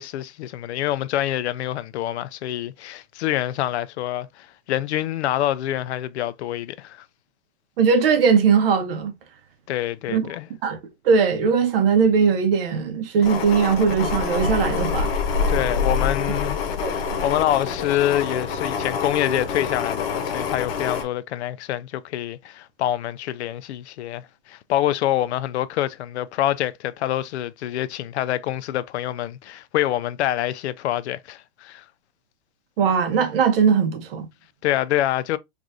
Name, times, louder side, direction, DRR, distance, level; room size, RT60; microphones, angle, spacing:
voice 1, 0.0-7.0 9.7-10.5 15.5-31.8 34.6-35.4, left 13 dB, 90° left, 0.5 m, -26 dB
voice 2, 7.8-9.1 10.1-10.2 10.6-10.8 11.0-15.1 16.8-17.0 32.8-34.3, right 6 dB, 60° right, 1.0 m, -19 dB
sound 1, 13.2-21.0, left 5 dB, 65° left, 1.0 m, -26 dB
4.7 x 2.6 x 2.5 m
supercardioid pair, 160°, 32 cm